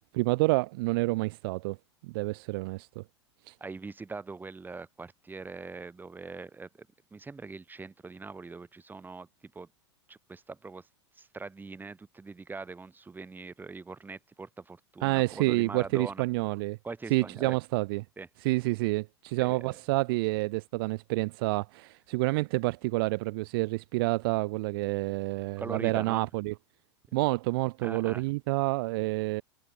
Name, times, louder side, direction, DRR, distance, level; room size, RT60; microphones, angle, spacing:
voice 1, 0.1-1.8 2.0-3.0 3.5-3.6 15.0-16.8 17.1-18.0 18.4-26.5 27.1-29.4, right 23 dB, 55° right, 0.8 m, -28 dB
voice 2, 3.6-9.3 9.5-9.7 10.1-10.9 11.2-16.2 16.8-17.6 18.2-18.3 19.4-19.7 25.6-26.3 27.8-28.2, right 4 dB, 15° right, 2.9 m, -42 dB
figure-of-eight pair, 90°, 15 cm